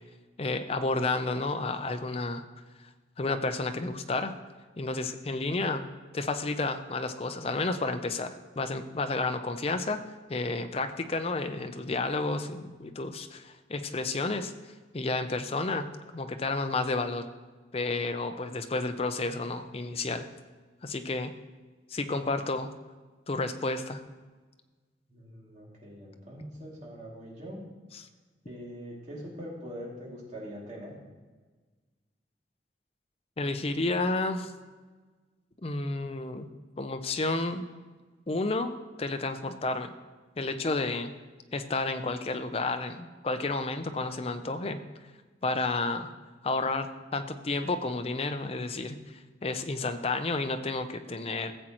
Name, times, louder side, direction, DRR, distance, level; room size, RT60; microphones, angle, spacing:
voice 1, 0.4-2.4 3.2-4.3 4.8-5.8 6.1-10.0 10.3-14.5 14.9-17.3 17.7-20.3 20.8-21.3 21.9-22.7 23.3-24.0 27.9-28.1 33.4-34.5 35.6-36.5 36.8-37.6 38.3-38.7 39.0-39.9 40.4-41.1 41.5-44.8 45.4-46.1 46.4-51.5, left 3 dB, 30° left, 8 dB, 0.5 m, -31 dB
voice 2, 25.1-27.6 28.5-30.9, equal, 40° right, -4 dB, 2.4 m, -42 dB
15.0 x 7.6 x 3.0 m, 1.4 s
head